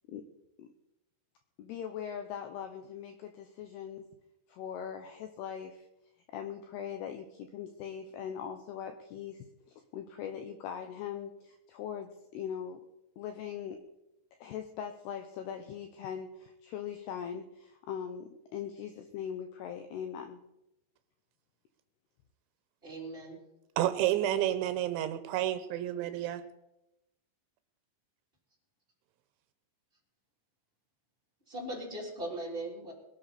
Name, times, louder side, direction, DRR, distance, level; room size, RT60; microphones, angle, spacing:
voice 1, 1.6-4.1 4.5-5.9 6.3-12.8 13.2-13.8 14.4-20.4, left 8 dB, 80° left, 6 dB, 2.4 m, -41 dB
voice 2, 22.8-23.4 31.5-32.9, right 1 dB, 15° right, -3 dB, 2.7 m, -39 dB
voice 3, 23.8-26.4, right 12 dB, 80° right, 10 dB, 2.9 m, -30 dB
21.5 x 12.0 x 4.2 m, 0.89 s
omnidirectional pair, 5.6 m